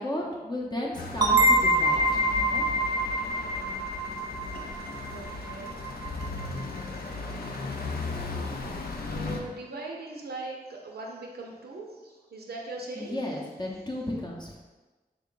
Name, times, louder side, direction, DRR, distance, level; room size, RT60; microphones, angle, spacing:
voice 1, 0.0-2.7 13.0-14.5, left 1 dB, 25° left, -3 dB, 0.6 m, -34 dB
sound 1, 1.0-9.4, left 3 dB, 70° left, 0.4 m, -36 dB
sound 2, 1.2-6.6, right 1 dB, 25° right, 0.4 m, -26 dB
voice 2, 4.5-6.7 9.1-13.2, right 2 dB, 80° right, -1 dB, 0.5 m, -41 dB
3.6 x 2.2 x 3.8 m, 1.2 s
cardioid pair, 50°, 16 cm